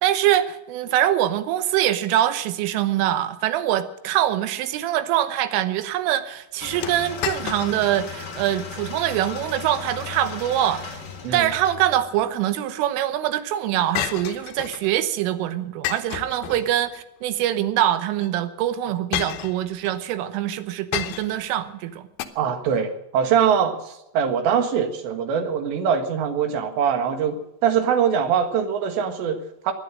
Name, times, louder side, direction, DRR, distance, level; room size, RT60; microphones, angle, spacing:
voice 1, 0.0-11.0 11.3-22.1, right 12 dB, 85° right, 12 dB, 3.6 m, -24 dB
sound 1, 6.6-12.3, left 6 dB, 65° left, 1.0 m, -37 dB
sound 2, 6.8-8.0 8.4-8.5 9.1-9.4 11.4-12.2 14.0-14.9 15.8-17.0 18.1-18.3 19.1-20.0 20.9-21.5 22.2-22.3, left 12 dB, 80° left, 2.2 m, -31 dB
voice 2, 22.4-29.7, right 7 dB, 70° right, 7 dB, 3.6 m, -23 dB
19.0 x 11.5 x 6.3 m, 0.89 s
omnidirectional pair, 5.6 m